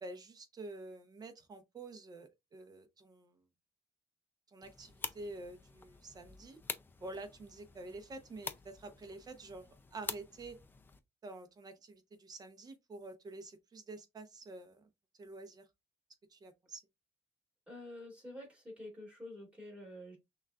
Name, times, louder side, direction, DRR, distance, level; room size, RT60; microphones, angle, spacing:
voice 1, 0.0-3.4 4.5-6.6 7.0-10.6 11.2-14.9 15.2-15.6 16.3-16.8, right 2 dB, 35° right, 0.8 m, -48 dB
sound 1, 4.6-11.0, left 4 dB, 20° left, 0.4 m, -47 dB
voice 2, 17.7-20.2, left 1 dB, 10° right, 2.2 m, -48 dB
6.0 x 2.4 x 2.3 m
cardioid pair, 140°, 12 cm